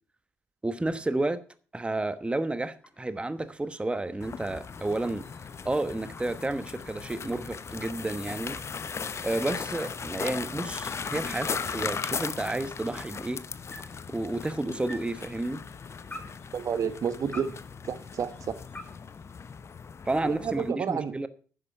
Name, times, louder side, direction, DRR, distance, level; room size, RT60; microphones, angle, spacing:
voice 1, 0.6-1.4 1.7-5.2 5.6-8.6 9.2-13.4 14.1-15.6 20.0-21.3, right 2 dB, 15° right, 1.1 m, -31 dB
sound 1, 2.3-20.0, left 1 dB, 20° left, 4.4 m, -52 dB
sound 2, 4.2-20.7, left 6 dB, 40° left, 0.9 m, -38 dB
voice 2, 16.5-17.5 17.9-18.3 20.2-21.1, right 7 dB, 50° right, 1.3 m, -30 dB
11.0 x 10.0 x 5.6 m
figure-of-eight pair, 45°, 7 cm